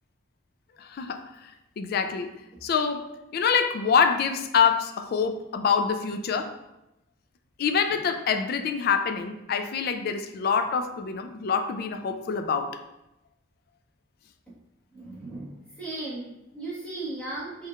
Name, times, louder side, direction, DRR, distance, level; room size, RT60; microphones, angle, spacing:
voice 1, 0.8-1.2 1.8-2.3 2.6-6.5 7.6-12.8, left 6 dB, 50° left, 8 dB, 0.3 m, -25 dB
voice 2, 14.9-17.7, right 2 dB, 5° left, -9 dB, 1.2 m, -36 dB
4.4 x 3.4 x 2.3 m, 0.90 s
head